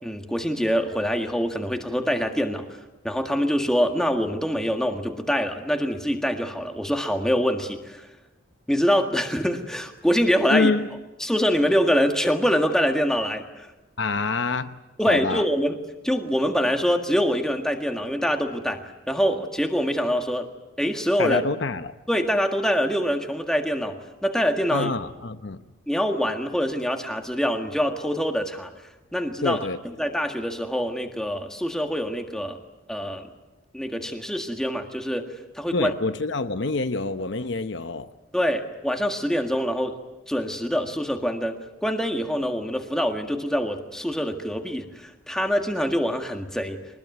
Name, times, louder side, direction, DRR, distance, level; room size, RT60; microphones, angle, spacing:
voice 1, 0.0-8.1 8.7-10.7 11.2-13.7 15.0-15.8 16.0-20.5 20.8-21.4 22.1-24.9 25.9-28.7 29.1-29.7 30.0-32.6 32.9-33.3 33.7-35.9 38.3-40.0 40.3-46.8, equal, 5° left, 1.8 m, -25 dB
voice 2, 10.5-10.9 14.0-14.8 15.1-15.4 21.2-21.9 24.7-25.6 29.4-29.8 35.7-38.1, left 3 dB, 60° left, 0.9 m, -26 dB
23.0 x 20.5 x 9.4 m
head